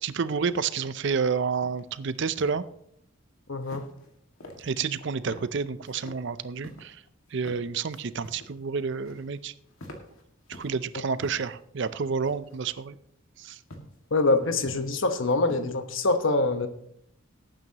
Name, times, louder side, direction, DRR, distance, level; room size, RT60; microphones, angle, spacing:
voice 1, 0.0-2.6 4.6-7.0 7.3-9.5 10.5-13.0 13.4-13.6, right 5 dB, 55° right, 14 dB, 0.5 m, -29 dB
sound 1, 1.6-1.8 2.1-2.6 3.6-4.1 4.4-5.0 5.3-5.5 5.8-6.2 6.6-6.8 7.3-7.6 7.9-8.5 8.8-9.4 9.7-10.8 11.2-11.6 12.2-12.7 13.7-13.9 14.4-15.0 15.3-15.8, equal, 85° left, 2.0 m, -45 dB
voice 2, 3.5-3.8 14.1-16.7, left 2 dB, 65° left, 8 dB, 1.1 m, -24 dB
18.0 x 9.0 x 2.9 m, 0.71 s
head